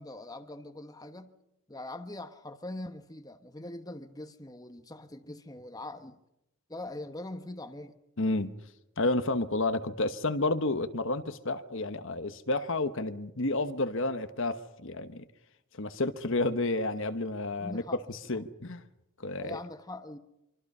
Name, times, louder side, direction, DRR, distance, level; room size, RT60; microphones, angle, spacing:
voice 1, 0.0-1.3 1.7-6.2 6.7-8.0 17.6-18.4 19.4-20.2, left 1 dB, 15° left, 1.2 m, -42 dB
voice 2, 8.2-8.5 9.0-15.2 15.8-17.8 18.1-18.8 19.2-19.6, left 2 dB, 55° left, 1.2 m, -30 dB
26.0 x 24.5 x 5.6 m
head